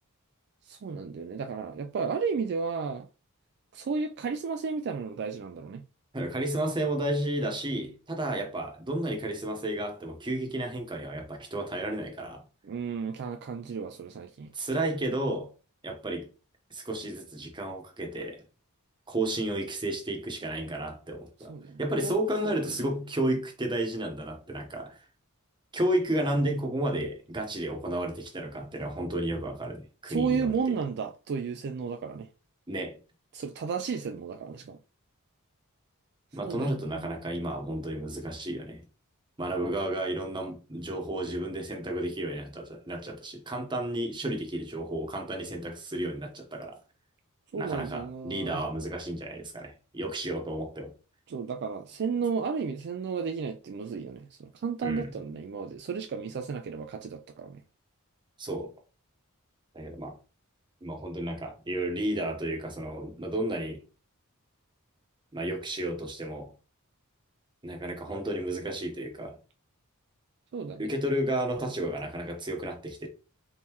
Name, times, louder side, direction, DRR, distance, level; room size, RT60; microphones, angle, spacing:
voice 1, 0.7-3.1 3.7-5.8 12.6-14.5 21.5-22.2 22.4-22.5 30.1-32.3 33.3-34.8 36.4-37.1 47.5-48.6 51.3-57.6 70.5-70.9, right 5 dB, 50° right, 0.4 m, -33 dB
voice 2, 6.1-12.4 14.5-15.5 15.8-16.3 16.7-18.4 19.1-21.5 21.8-25.0 25.7-30.8 32.7-33.0 36.3-38.8 39.4-46.8 47.6-50.9 54.8-55.1 58.4-58.7 59.7-60.1 60.8-63.8 65.3-66.5 67.6-69.4 70.8-73.1, right 1 dB, 20° right, 1.0 m, -32 dB
4.0 x 3.7 x 3.0 m
head